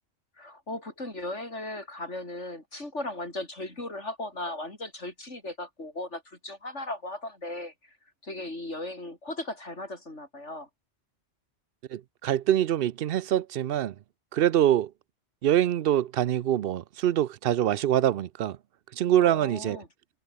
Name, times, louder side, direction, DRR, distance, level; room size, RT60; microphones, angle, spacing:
voice 1, 0.4-7.9 8.2-10.7 19.2-19.9, left 2 dB, 90° left, 6.3 m, -37 dB
voice 2, 11.9-13.9 14.3-14.9 15.4-18.6 19.0-19.8, right 11 dB, 60° right, 0.7 m, -24 dB
omnidirectional pair, 1.2 m